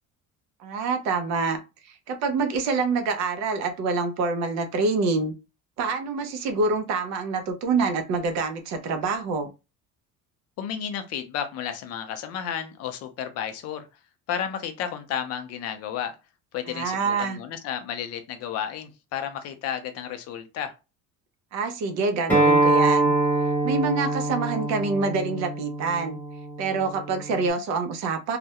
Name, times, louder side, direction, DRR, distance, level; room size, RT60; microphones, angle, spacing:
voice 1, 0.6-1.6 2.1-5.3 5.8-9.5 16.7-17.4 21.5-23.1 23.6-26.2 26.6-28.4, right 4 dB, 55° right, 0.5 m, -26 dB
voice 2, 10.6-13.9 14.3-16.2 16.5-20.7, left 8 dB, 50° left, 0.5 m, -32 dB
Acoustic guitar, 22.3-27.5, right 2 dB, 5° left, 0.8 m, -24 dB
2.3 x 2.0 x 2.8 m
cardioid pair, 180°, 33 cm